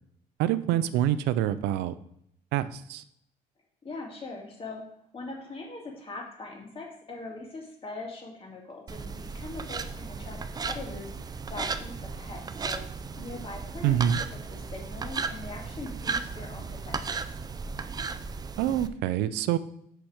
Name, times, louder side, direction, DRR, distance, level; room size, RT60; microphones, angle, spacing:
voice 1, 0.4-1.9 2.5-3.0 13.8-14.2 18.6-19.6, right 11 dB, 90° right, 14 dB, 0.5 m, -26 dB
voice 2, 3.8-4.8 5.1-14.0 14.3-17.3, left 3 dB, 35° left, 0 dB, 2.3 m, -41 dB
sound 1, 8.9-18.9, right 4 dB, 25° right, 0.4 m, -35 dB
6.1 x 5.9 x 4.9 m, 0.72 s
cardioid pair, 110°, 17 cm